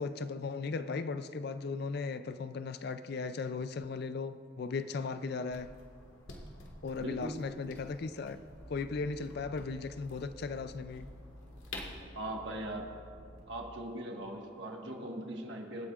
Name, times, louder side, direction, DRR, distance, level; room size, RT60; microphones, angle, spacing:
voice 1, 0.0-5.7 6.8-8.4 8.7-11.1, left 4 dB, 50° left, 0.4 m, -37 dB
sound 1, 5.5-12.0, left 2 dB, 85° left, 1.7 m, -50 dB
voice 2, 7.0-7.4 12.1-12.9 13.5-15.9, right 1 dB, 60° right, 1.5 m, -40 dB
sound 2, 8.5-13.4, left 1 dB, 30° right, 2.7 m, -52 dB
24.5 x 8.6 x 2.4 m
head